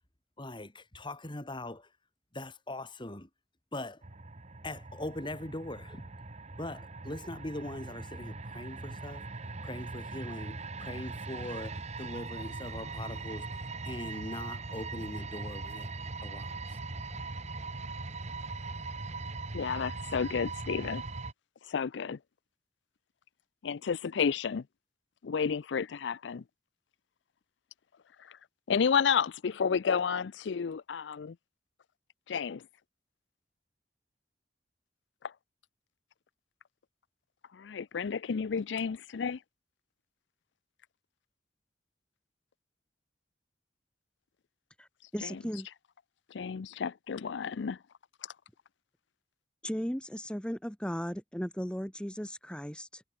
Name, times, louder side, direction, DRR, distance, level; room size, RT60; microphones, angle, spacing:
voice 1, 0.4-1.9 2.3-3.3 3.7-4.0 4.6-6.1 6.6-15.9 16.2-16.8 17.1-17.2, left 1 dB, 25° left, 3.1 m, -41 dB
sound 1, 4.0-21.3, right 3 dB, 40° right, 1.3 m, -40 dB
voice 2, 19.5-21.0 21.7-22.2 23.6-24.6 25.2-26.4 28.2-28.4 28.7-31.4 32.3-32.6 35.2-35.3 37.5-39.4 45.2-45.4 46.3-47.8 48.2-48.3, left 6 dB, 80° left, 0.5 m, -31 dB
voice 3, 45.1-45.7 49.6-53.0, equal, 5° left, 2.0 m, -36 dB
head